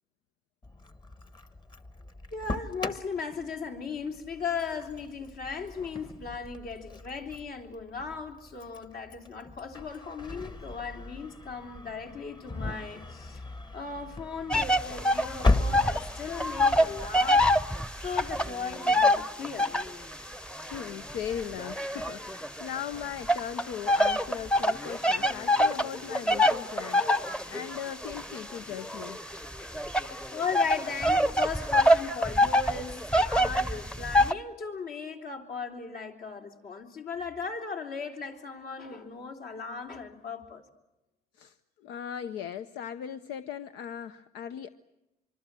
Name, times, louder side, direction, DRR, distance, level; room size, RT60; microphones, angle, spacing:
Engine starting, 0.6-17.6, left 2 dB, 25° left, 1.2 m, -36 dB
voice 1, 2.3-13.4 13.7-17.5 18.0-19.7 30.3-40.6, left 5 dB, 65° left, 3 dB, 3.6 m, -37 dB
sound 1, 14.5-16.1 16.3-20.0 20.6-22.7 23.3-34.3, left 1 dB, 5° left, 0.8 m, -25 dB
voice 2, 20.6-29.2 41.4-41.6 41.8-44.7, left 9 dB, 90° left, 11 dB, 0.8 m, -38 dB
24.5 x 24.5 x 7.6 m, 0.99 s
cardioid pair, 110°, 17 cm